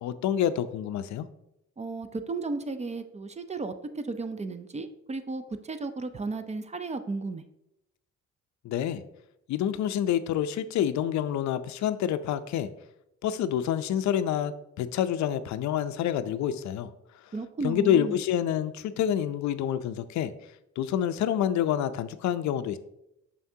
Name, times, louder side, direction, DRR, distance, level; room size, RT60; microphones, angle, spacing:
voice 1, 0.0-1.3 8.6-9.0 9.5-12.7 13.2-16.9 17.6-20.3 20.8-22.8, left 10 dB, 70° left, 12 dB, 0.5 m, -27 dB
voice 2, 1.8-7.5 17.3-18.2, right 3 dB, 25° right, 10 dB, 0.4 m, -34 dB
6.3 x 5.7 x 2.7 m, 0.83 s
cardioid pair, 90°, 30 cm